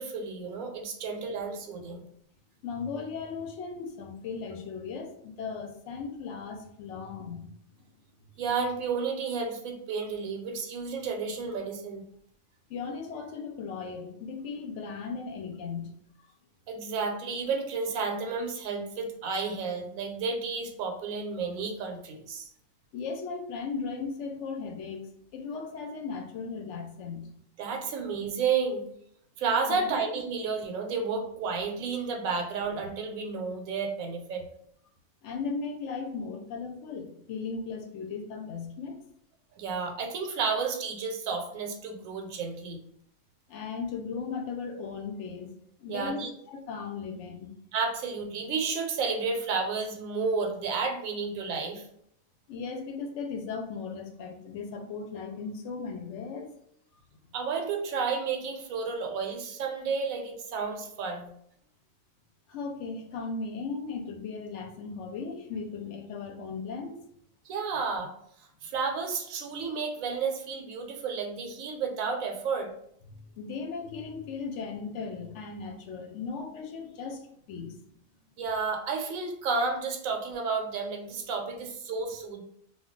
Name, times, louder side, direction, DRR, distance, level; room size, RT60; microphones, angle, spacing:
voice 1, 0.0-2.0 8.4-12.0 16.7-22.5 27.6-28.8 29.4-34.4 39.6-42.8 45.9-46.3 47.7-51.8 57.3-61.3 67.5-68.1 68.6-72.7 78.4-82.4, right 5 dB, 80° right, 3 dB, 1.0 m, -31 dB
voice 2, 2.6-7.5 12.7-15.9 22.9-27.3 29.7-30.0 35.2-39.0 43.5-45.5 45.8-47.5 52.5-56.6 62.5-67.0 73.1-77.2 77.5-77.8, left 5 dB, 65° left, 4 dB, 0.8 m, -37 dB
2.3 x 2.2 x 3.7 m, 0.69 s
omnidirectional pair, 1.4 m